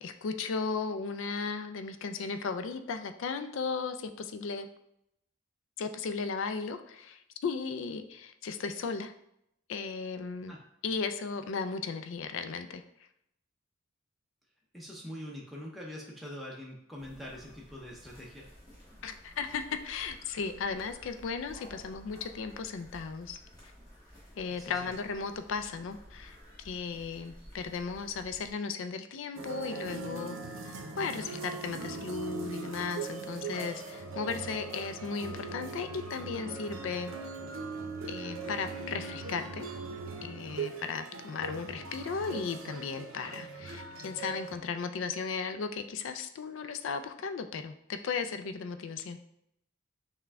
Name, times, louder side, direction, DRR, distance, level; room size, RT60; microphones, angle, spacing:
voice 1, 0.0-4.7 5.8-9.1 9.7-10.6 10.8-12.8 19.0-23.4 24.4-26.4 26.6-37.1 38.1-39.7 40.2-49.2, left 5 dB, 75° left, 9 dB, 0.4 m, -36 dB
voice 2, 14.7-18.5 24.5-24.9, left 1 dB, ahead, -4 dB, 0.5 m, -44 dB
sound 1, 17.0-28.5, equal, 20° left, 1.3 m, -54 dB
sound 2, 29.4-44.6, right 4 dB, 80° right, 0.6 m, -40 dB
5.8 x 2.2 x 3.4 m, 0.77 s
head